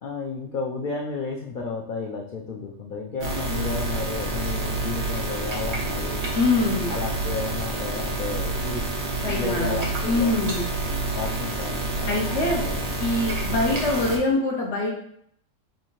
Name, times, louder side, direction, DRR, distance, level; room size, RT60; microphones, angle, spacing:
voice 1, 0.0-6.3 6.9-8.9 9.2-10.5 11.1-12.3 12.6-13.0 13.5-13.7, left 4 dB, 80° left, -1 dB, 0.4 m, -32 dB
sound 1, 3.2-14.2, right 2 dB, 40° right, 0.9 m, -28 dB
voice 2, 6.3-6.9 9.2-10.6 11.2-11.3 12.1-12.6 13.0-14.9, left 2 dB, 60° left, -2 dB, 1.0 m, -24 dB
6.1 x 2.7 x 2.9 m, 0.67 s
omnidirectional pair, 1.5 m